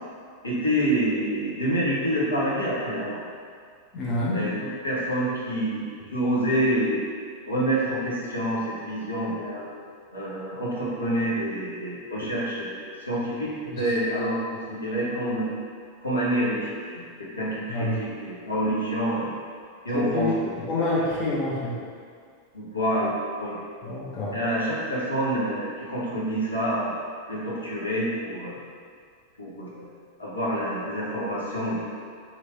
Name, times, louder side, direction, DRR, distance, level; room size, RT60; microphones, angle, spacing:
voice 1, 0.4-3.2 4.3-5.9 6.1-7.0 7.5-9.7 10.1-15.5 16.0-19.3 19.8-21.1 22.5-23.6 24.3-26.9 27.3-28.6 29.4-29.9 30.2-31.8, right 1 dB, 80° left, -7 dB, 0.9 m, -27 dB
voice 2, 3.9-4.4 17.7-17.9 19.9-20.3 20.7-21.7 23.8-24.3, left 2 dB, 35° left, -6 dB, 0.7 m, -27 dB
3.0 x 2.6 x 4.3 m, 2.1 s
figure-of-eight pair, 90°, 0 cm